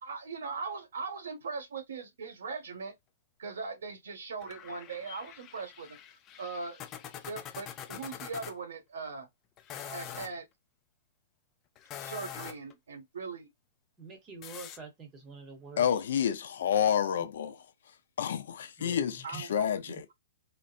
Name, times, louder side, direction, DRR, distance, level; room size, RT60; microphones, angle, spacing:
voice 1, 0.0-2.9 3.4-6.0 6.4-6.8 7.3-9.3 9.8-10.4 12.0-13.5 19.2-19.7, right 4 dB, 80° right, 1.4 m, -40 dB
sound 1, 4.4-8.6 9.6-10.3 11.8-12.7 14.4-14.8, left 10 dB, 15° left, 0.3 m, -44 dB
voice 2, 14.0-15.9 18.8-19.4, right 4 dB, 15° right, 0.9 m, -46 dB
voice 3, 15.8-17.6 18.2-20.0, left 8 dB, 55° left, 0.6 m, -29 dB
4.0 x 2.0 x 2.4 m
hypercardioid pair, 180°, 0 cm